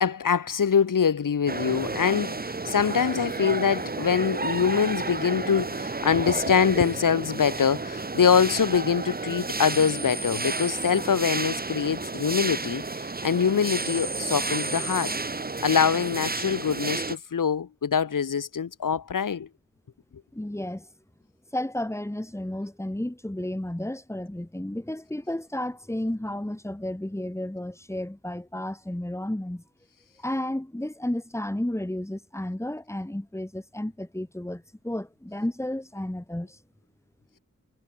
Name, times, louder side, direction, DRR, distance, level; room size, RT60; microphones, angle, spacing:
voice 1, 0.0-15.2 15.6-19.5, left 7 dB, 85° left, 1.4 m, -24 dB
sound 1, 1.5-17.2, right 3 dB, 30° right, 1.2 m, -31 dB
voice 2, 20.3-20.9 21.5-29.6 30.2-36.6, left 1 dB, 10° left, 1.9 m, -32 dB
wide cardioid pair, 60°, 31 cm